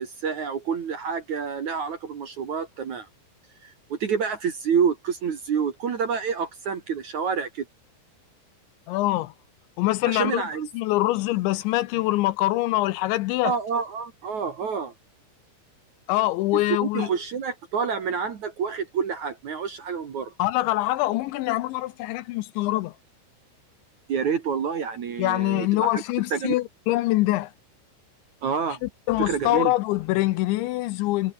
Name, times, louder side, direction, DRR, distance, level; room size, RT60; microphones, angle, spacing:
voice 1, 0.0-3.1 3.6-7.7 10.1-10.7 13.4-14.9 16.5-20.3 24.1-25.9 26.3-26.5 28.4-28.8 29.2-29.7, right 6 dB, 50° right, 2.6 m, -28 dB
voice 2, 8.9-9.3 9.8-10.4 10.7-13.5 16.1-17.1 20.4-22.9 25.2-27.5 28.8-31.3, left 17 dB, 80° left, 2.9 m, -24 dB
omnidirectional pair, 5.6 m